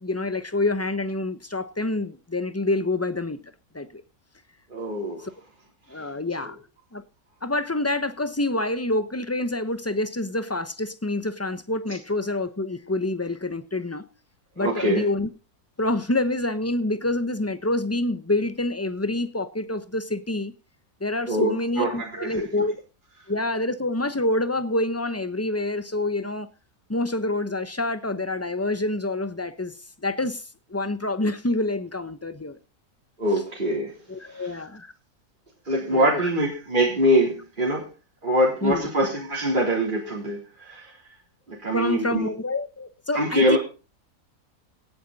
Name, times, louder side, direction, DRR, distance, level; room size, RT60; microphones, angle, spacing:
voice 1, 0.0-3.4 3.7-4.0 5.9-6.6 6.9-7.0 7.4-14.0 14.6-15.3 15.8-20.5 21.0-22.8 23.3-26.5 26.9-29.7 30.0-30.4 30.7-32.6 33.3-33.4 34.1-34.9 35.9-36.3 38.6-38.9 41.7-43.6, left 2 dB, 10° left, 0.8 m, -27 dB
voice 2, 4.7-5.3 6.4-6.5 14.6-15.1 21.3-22.5 33.2-33.9 34.3-34.5 35.7-37.9 38.2-40.9 41.5-42.3 43.1-43.6, equal, 30° right, 4.1 m, -24 dB
17.5 x 9.5 x 4.1 m
omnidirectional pair, 1.6 m